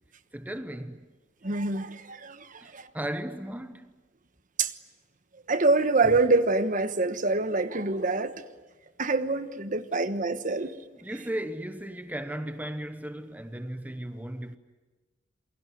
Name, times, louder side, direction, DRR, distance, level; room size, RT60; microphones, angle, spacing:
voice 1, 0.3-1.1 2.6-4.0 11.0-14.6, right 1 dB, 10° right, 0.9 m, -36 dB
voice 2, 1.4-2.9 4.6-4.7 5.5-8.3 9.0-10.7, right 3 dB, 45° right, 1.2 m, -25 dB
28.0 x 22.5 x 9.4 m
head